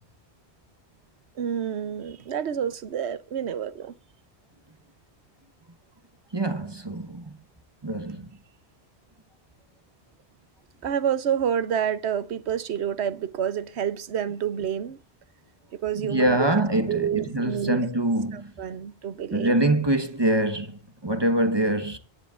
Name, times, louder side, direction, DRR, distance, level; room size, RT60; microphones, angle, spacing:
voice 1, 1.4-3.9 10.8-15.0 15.7-16.6 16.9-17.9 18.3-19.6, right 9 dB, 85° right, 1.1 m, -28 dB
voice 2, 6.3-7.3 7.8-8.3 16.0-18.5 19.3-22.0, right 1 dB, 25° right, 1.1 m, -24 dB
25.5 x 10.0 x 2.4 m
omnidirectional pair, 1.1 m